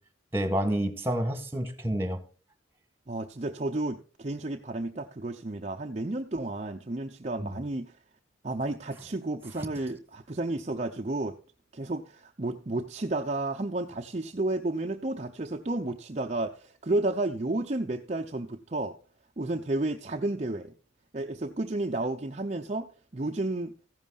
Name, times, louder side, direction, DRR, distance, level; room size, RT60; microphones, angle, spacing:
voice 1, 0.3-2.2 7.4-7.5, equal, 10° right, 1.8 m, -29 dB
voice 2, 3.1-8.0 8.4-11.4 11.7-19.0 19.4-20.7 21.1-23.7, right 2 dB, 35° right, 0.7 m, -32 dB
15.0 x 11.0 x 2.5 m
head